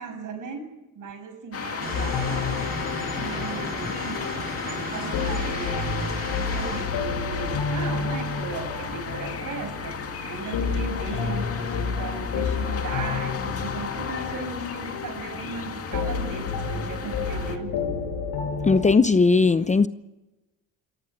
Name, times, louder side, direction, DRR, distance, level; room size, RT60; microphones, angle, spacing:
voice 1, 0.0-4.3 4.9-18.0, right 4 dB, 60° right, 6.8 m, -37 dB
sound 1, 1.5-17.6, left 6 dB, 40° left, 2.3 m, -34 dB
sound 2, 1.8-6.8, right 2 dB, 25° right, 6.8 m, -36 dB
sound 3, 1.9-18.9, left 5 dB, 80° left, 5.9 m, -31 dB
voice 2, 18.6-19.9, left 4 dB, 20° left, 0.7 m, -19 dB
27.0 x 15.0 x 8.1 m
cardioid pair, 110°, 36 cm